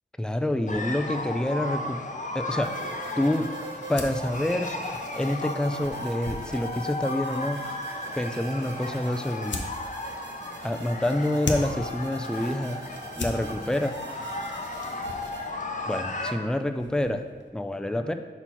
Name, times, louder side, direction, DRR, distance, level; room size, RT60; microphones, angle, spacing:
voice 1, 0.2-2.0 2.3-3.5 3.9-4.7 5.2-7.6 8.1-9.6 10.6-12.8 13.2-14.0 15.9-17.2 17.5-18.1, left 1 dB, 5° left, 7 dB, 0.4 m, -27 dB
sound 1, 0.7-16.3, left 2 dB, 45° left, 0.7 m, -35 dB
sound 2, 2.6-15.5, right 3 dB, 75° right, 1.0 m, -43 dB
sound 3, 3.9-17.5, left 2 dB, 85° left, 0.6 m, -42 dB
5.8 x 4.1 x 4.4 m, 1.5 s
wide cardioid pair, 45°, 18 cm